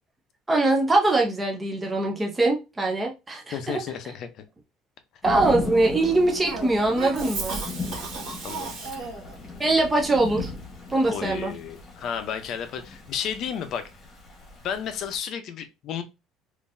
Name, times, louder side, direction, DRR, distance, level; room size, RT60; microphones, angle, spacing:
voice 1, 0.5-3.8 5.2-7.6 9.6-10.5 10.9-11.5, right 2 dB, 15° right, 0.6 m, -22 dB
voice 2, 3.5-4.4 8.4-8.7 11.1-13.9 14.6-16.0, left 8 dB, 45° left, 0.6 m, -32 dB
Thunder / Rain, 5.2-15.2, left 3 dB, 25° left, 1.2 m, -37 dB
Cough, 6.4-9.4, right 4 dB, 65° right, 1.4 m, -34 dB
3.8 x 2.6 x 2.6 m
cardioid pair, 155°, 0 cm